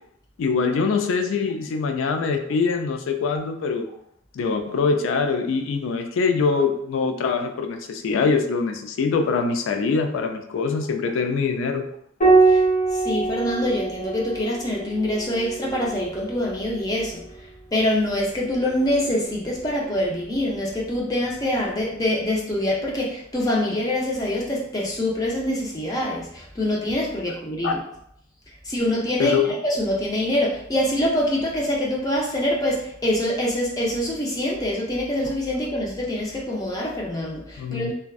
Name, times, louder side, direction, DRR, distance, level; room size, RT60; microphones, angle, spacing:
voice 1, 0.4-3.9 4.3-11.9 27.6-27.8 29.2-29.6 37.6-37.9, left 5 dB, 80° left, 5 dB, 0.3 m, -23 dB
Piano, 12.2-17.1 18.7-19.5, right 3 dB, 40° left, 1.3 m, -23 dB
voice 2, 12.9-17.2 17.7-27.8 28.7-37.9, left 1 dB, 20° left, -3 dB, 0.5 m, -25 dB
2.5 x 2.2 x 2.3 m, 0.73 s
head